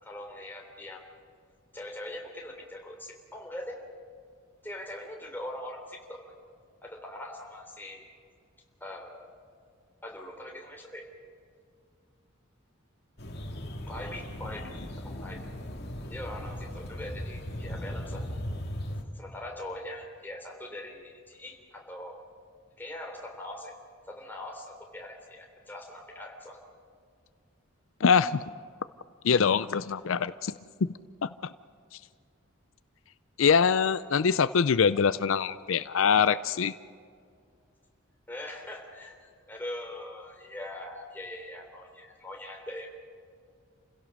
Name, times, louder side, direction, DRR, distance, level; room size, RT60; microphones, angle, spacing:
voice 1, 0.0-1.1 1.7-3.8 4.6-6.2 6.8-8.0 8.8-9.3 10.0-11.1 13.9-14.7 15.0-15.4 16.1-18.3 19.1-22.2 22.8-23.7 24.1-26.6 38.3-42.9, left 1 dB, 10° left, 0 dB, 3.3 m, -42 dB
sound 1, 13.2-19.0, equal, 50° left, 2.3 m, -38 dB
voice 2, 28.0-28.4 29.2-30.5 31.2-31.5 31.9-32.0 33.4-36.7, left 6 dB, 70° left, 14 dB, 0.5 m, -24 dB
29.5 x 16.5 x 6.4 m, 2.3 s
head